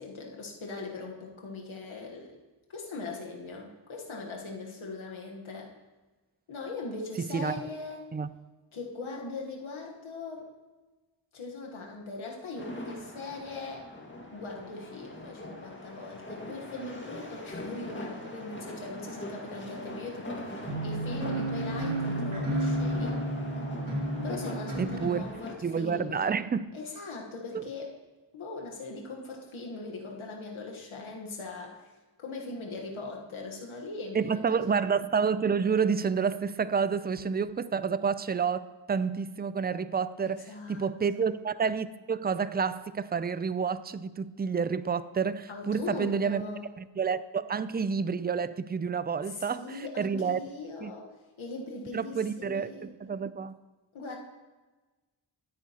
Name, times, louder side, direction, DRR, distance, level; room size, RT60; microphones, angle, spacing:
voice 1, 0.0-2.4 2.7-5.7 6.5-8.0 8.7-10.5 11.3-13.9 14.3-23.2 24.2-26.3 26.7-28.0 28.3-31.9 32.2-34.7 40.2-41.2 45.5-46.7 49.3-52.9 53.9-54.2, left 3 dB, 90° left, 1.4 m, -40 dB
voice 2, 7.2-7.5 8.1-8.3 24.8-25.3 25.6-26.7 27.5-27.6 34.1-46.4 46.8-50.4 50.8-50.9 51.9-53.6, right 6 dB, 20° right, 0.4 m, -29 dB
sound 1, 12.6-25.6, left 1 dB, 25° left, 2.0 m, -42 dB
sound 2, 20.6-25.2, right 1 dB, 85° right, 2.8 m, -31 dB
13.0 x 9.2 x 2.9 m
cardioid pair, 55°, 47 cm